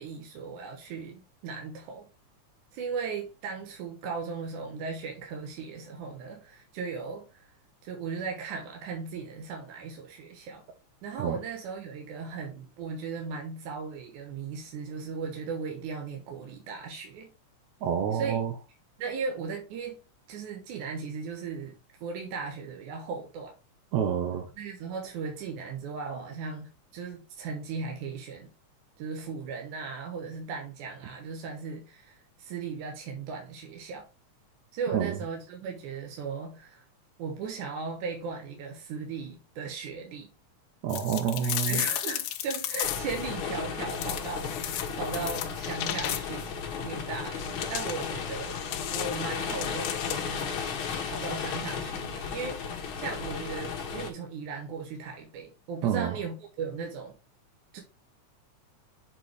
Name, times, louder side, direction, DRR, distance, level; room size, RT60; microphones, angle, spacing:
voice 1, 0.0-2.1 2.7-7.5 7.8-10.6 11.0-17.3 18.1-18.4 19.0-20.0 20.3-23.5 24.6-28.5 29.0-34.1 34.7-36.8 37.2-40.3 41.4-46.6 46.8-48.6 48.9-50.6 51.1-52.6 53.0-57.1 57.7-57.8, right 5 dB, 90° right, 2.6 m, -37 dB
voice 2, 17.8-18.5 23.9-24.5 34.9-35.2 40.8-41.8 55.8-56.2, right 8 dB, 75° right, 2.0 m, -28 dB
sound 1, 40.9-43.3 43.9-46.5 47.4-50.4, left 11 dB, 75° left, 1.6 m, -35 dB
sound 2, 42.8-54.1, left 6 dB, 60° left, 1.5 m, -34 dB
6.8 x 3.8 x 4.7 m
omnidirectional pair, 3.4 m